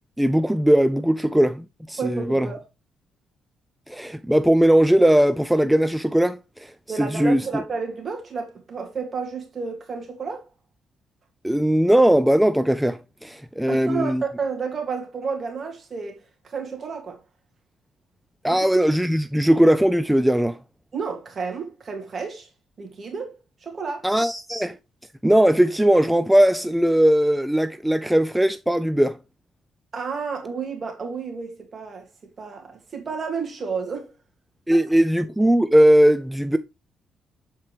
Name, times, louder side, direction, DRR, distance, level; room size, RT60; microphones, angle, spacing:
voice 1, 0.2-2.5 3.9-7.6 11.4-14.2 18.4-20.6 24.0-24.8 25.2-29.2 34.7-36.6, right 1 dB, 5° right, 0.3 m, -19 dB
voice 2, 2.0-2.6 6.9-10.4 13.7-17.2 18.5-18.7 20.9-22.5 22.8-24.1 29.9-34.1 34.7-34.8, right 5 dB, 40° right, 2.2 m, -31 dB
7.5 x 4.4 x 3.2 m
cardioid pair, 90°, 0 cm